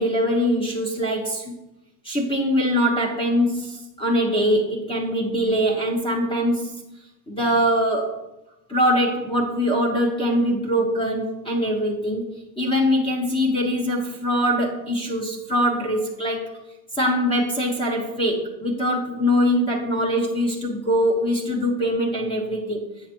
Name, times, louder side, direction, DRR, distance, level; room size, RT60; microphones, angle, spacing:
voice 1, 0.0-1.5 2.0-6.7 7.3-8.2 8.7-12.2 12.6-16.6 16.9-22.8, equal, 10° left, 1 dB, 0.9 m, -22 dB
8.5 x 6.6 x 4.4 m, 0.92 s
cardioid pair, 175°, 43 cm